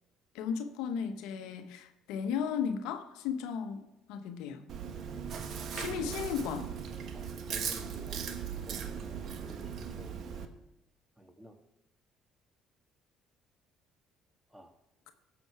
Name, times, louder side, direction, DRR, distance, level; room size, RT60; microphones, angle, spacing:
voice 1, 0.3-4.7 5.7-6.7, left 7 dB, 70° left, 1.0 m, -35 dB
Chewing mastication, 4.7-10.5, right 7 dB, 60° right, 1.2 m, -38 dB
voice 2, 5.2-6.2 7.1-8.4 8.6-10.2 11.2-11.6 14.5-14.7, equal, 10° right, 1.9 m, -50 dB
17.0 x 7.0 x 4.7 m
hypercardioid pair, 55°, 0 cm